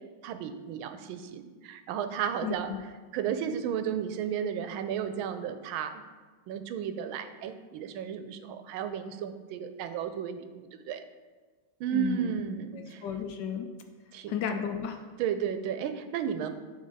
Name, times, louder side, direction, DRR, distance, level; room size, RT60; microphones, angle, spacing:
voice 1, 0.2-2.7 3.1-6.0 6.5-11.0 11.8-13.0 14.1-14.4 15.2-16.5, right 8 dB, 90° right, 9 dB, 1.4 m, -33 dB
voice 2, 2.4-2.8 11.9-12.4 12.7-13.7 14.3-15.0, left 7 dB, 75° left, 5 dB, 1.1 m, -33 dB
10.5 x 3.6 x 4.0 m, 1.4 s
omnidirectional pair, 2.2 m